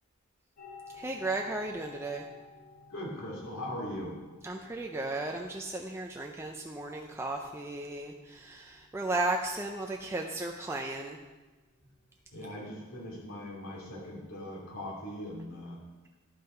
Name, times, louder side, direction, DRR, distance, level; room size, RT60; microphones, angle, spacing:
sound 1, 0.6-15.3, left 4 dB, 85° left, 2.3 m, -56 dB
voice 1, 0.9-2.2 4.4-11.2, right 2 dB, 10° right, 1 dB, 0.4 m, -35 dB
voice 2, 2.9-4.2 12.3-15.8, left 1 dB, 65° left, -4 dB, 2.7 m, -40 dB
11.5 x 5.6 x 4.4 m, 1.2 s
head